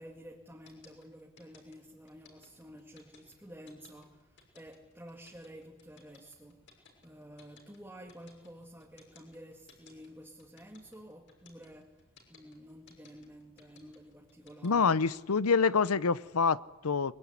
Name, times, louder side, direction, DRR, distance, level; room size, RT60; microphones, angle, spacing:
voice 1, 0.0-14.9, equal, 10° right, 1 dB, 2.2 m, -51 dB
sound 1, 0.6-14.7, left 5 dB, 55° left, 6.2 m, -59 dB
voice 2, 14.6-17.1, left 5 dB, 90° left, 18 dB, 0.8 m, -26 dB
23.5 x 22.5 x 9.8 m, 1.1 s
head